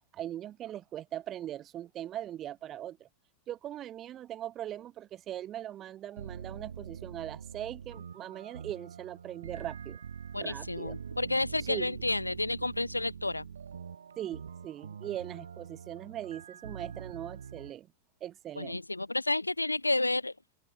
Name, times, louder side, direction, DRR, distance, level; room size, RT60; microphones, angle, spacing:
voice 1, 0.1-3.1 3.5-10.0 10.4-11.0 11.6-12.0 14.2-17.9 18.2-18.8, right 12 dB, 30° right, 5.2 m, -40 dB
sound 1, 6.2-17.7, right 7 dB, 70° right, 5.3 m, -44 dB
voice 2, 10.3-13.4 18.6-20.3, left 2 dB, 85° left, 0.4 m, -31 dB
open air
figure-of-eight pair, 90°, 0 cm